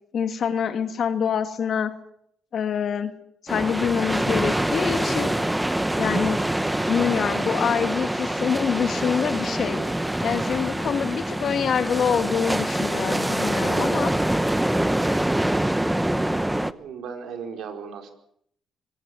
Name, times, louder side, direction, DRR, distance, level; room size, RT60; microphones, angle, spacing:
voice 1, 0.1-1.9 2.5-3.1 3.4-5.3 6.0-6.4 6.9-9.8 10.2-14.1, left 7 dB, 60° left, 8 dB, 2.4 m, -25 dB
sound 1, 3.5-16.7, right 1 dB, 5° right, 1.0 m, -25 dB
voice 2, 16.7-18.1, right 6 dB, 75° right, 5 dB, 4.8 m, -36 dB
25.0 x 18.0 x 7.8 m, 0.69 s
cardioid pair, 90°, 0 cm